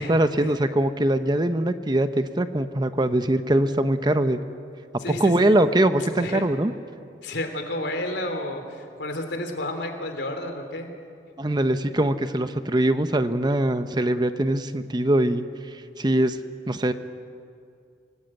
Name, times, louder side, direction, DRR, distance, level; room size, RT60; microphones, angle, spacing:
voice 1, 0.0-4.4 5.2-6.7 11.4-15.4 16.0-16.4 16.7-16.9, right 1 dB, 25° right, 10 dB, 0.8 m, -22 dB
voice 2, 5.0-5.5 6.2-6.5 7.2-10.9, left 1 dB, 85° left, 5 dB, 3.4 m, -31 dB
26.0 x 18.5 x 9.0 m, 2.3 s
head